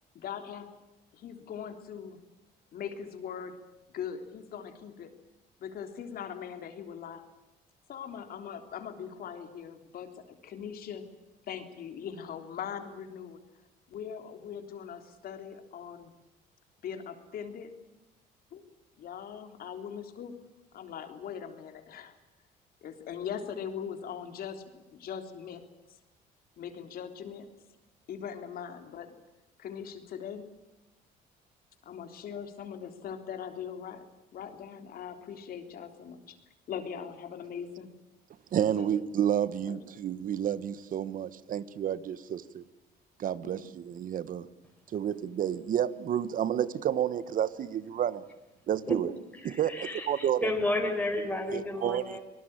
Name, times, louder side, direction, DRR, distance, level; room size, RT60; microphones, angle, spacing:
voice 1, 0.1-0.7 1.1-2.2 2.7-3.6 3.9-5.1 5.6-7.2 7.9-11.0 11.5-13.4 13.9-16.1 16.8-17.7 18.5-18.6 19.0-20.3 20.7-22.1 22.8-25.6 25.9-26.0 26.6-27.5 28.1-29.2 29.6-30.5 31.8-34.0 34.3-36.4 36.7-37.9 38.8-39.0 39.7-40.0 43.4-43.7, left 8 dB, 60° left, 7 dB, 3.6 m, -41 dB
voice 2, 38.5-42.6 43.2-44.5 44.9-48.2 48.7-49.1 49.4-50.5 51.5-52.2, right 10 dB, 55° right, 16 dB, 1.3 m, -30 dB
voice 3, 49.4-52.2, left 2 dB, 10° left, 2 dB, 5.0 m, -32 dB
25.5 x 19.5 x 9.0 m, 1.0 s
cardioid pair, 110°, 17 cm